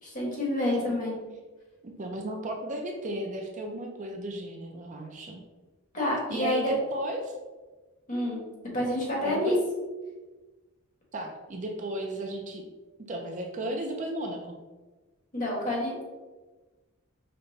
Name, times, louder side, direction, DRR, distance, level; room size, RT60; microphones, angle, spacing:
voice 1, 0.0-1.1 5.9-6.7 8.1-8.4 8.7-9.6 15.3-16.0, left 1 dB, 35° left, -4 dB, 1.4 m, -28 dB
voice 2, 1.8-5.4 6.3-7.3 9.2-9.6 11.1-12.6 13.1-14.6, right 1 dB, 35° right, 2 dB, 0.4 m, -34 dB
5.3 x 2.2 x 4.0 m, 1.2 s
head